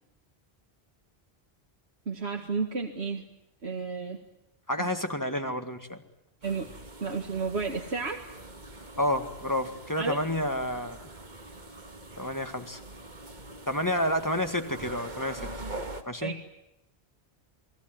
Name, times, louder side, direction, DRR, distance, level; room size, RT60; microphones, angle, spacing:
voice 1, 2.1-3.2 3.6-4.2 4.8-4.9 6.4-6.7 7.0-8.2 10.0-10.2 16.2-16.4, right 4 dB, 80° right, 3 dB, 2.2 m, -31 dB
voice 2, 4.7-6.0 9.0-11.1 12.2-12.8 13.7-15.4 16.0-16.4, left 1 dB, 20° left, 6 dB, 1.9 m, -30 dB
sound 1, 6.4-16.0, right 2 dB, 45° right, 2.0 m, -43 dB
28.5 x 19.5 x 9.2 m, 0.84 s
omnidirectional pair, 1.1 m